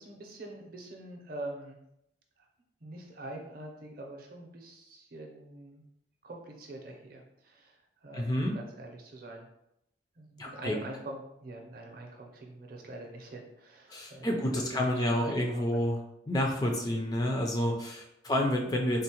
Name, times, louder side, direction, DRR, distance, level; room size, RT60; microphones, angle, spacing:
voice 1, 0.0-1.8 2.4-2.5 2.8-5.8 6.2-9.5 10.2-14.3 14.5-15.8 18.4-18.5, right 2 dB, 50° right, 1 dB, 0.5 m, -44 dB
voice 2, 8.1-8.5 10.4-10.8 13.9-16.0 16.3-19.0, left 1 dB, 20° left, 1 dB, 0.3 m, -29 dB
3.7 x 2.0 x 2.8 m, 0.82 s
head